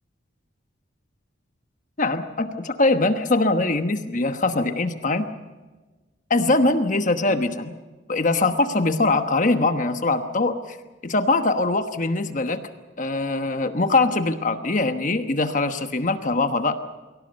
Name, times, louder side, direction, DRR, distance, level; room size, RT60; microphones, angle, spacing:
voice 1, 2.0-5.2 6.3-7.7 8.1-10.8 11.0-12.6 13.0-16.8, left 2 dB, 40° left, 8 dB, 1.2 m, -22 dB
23.5 x 17.0 x 8.1 m, 1.2 s
head